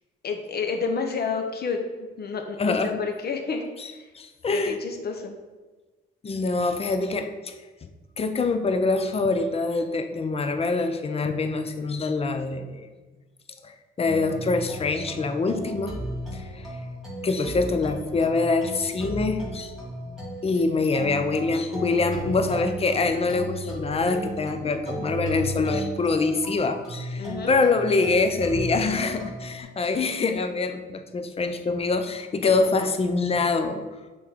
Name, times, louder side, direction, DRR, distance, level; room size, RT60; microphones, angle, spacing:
voice 1, 0.2-1.8 2.2-3.6 3.9-4.1 4.5-5.4 11.2-11.3 27.2-27.6 32.4-32.9, left 5 dB, 50° left, 4 dB, 0.9 m, -30 dB
voice 2, 2.6-3.0 3.8-3.9 4.1-4.8 6.2-7.5 7.8-7.9 8.2-12.9 13.6-16.0 16.3-16.7 17.2-19.7 20.1-20.2 20.4-33.8, left 3 dB, 30° left, 8 dB, 0.5 m, -25 dB
sound 1, 14.0-29.6, right 1 dB, ahead, 1.9 m, -35 dB
6.1 x 3.6 x 4.5 m, 1.2 s
cardioid pair, 115°, 21 cm